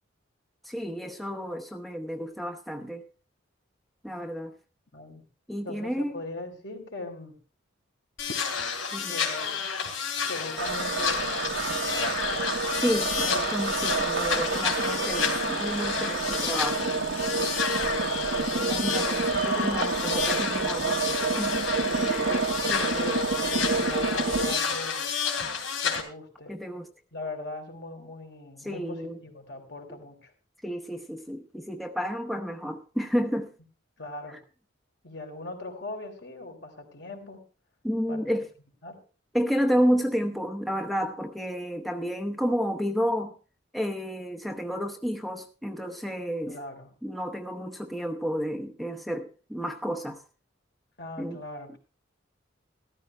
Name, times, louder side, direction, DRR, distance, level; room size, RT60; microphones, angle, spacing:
voice 1, 0.6-3.0 4.0-4.5 5.5-6.2 8.9-9.2 12.7-16.9 18.6-21.0 21.4-21.7 22.0-22.4 22.7-23.1 26.5-26.9 28.6-29.2 30.6-33.5 37.8-38.5 39.3-43.4 43.7-46.6 47.0-50.2 51.2-51.4, equal, ahead, 2 dB, 0.8 m, -31 dB
voice 2, 4.9-5.2 5.6-7.4 9.1-9.6 10.3-12.5 17.9-19.1 21.7-22.2 22.7-23.6 23.9-25.1 25.8-26.5 27.1-30.3 34.0-34.4 35.0-37.4 38.1-38.2 38.8-39.0 46.5-46.9 51.0-51.8, left 2 dB, 60° left, 3 dB, 3.5 m, -40 dB
sound 1, 8.2-26.0, left 6 dB, 90° left, 3.1 m, -30 dB
sound 2, 10.6-24.6, right 4 dB, 75° right, 1.2 m, -29 dB
14.0 x 14.0 x 3.2 m, 0.35 s
head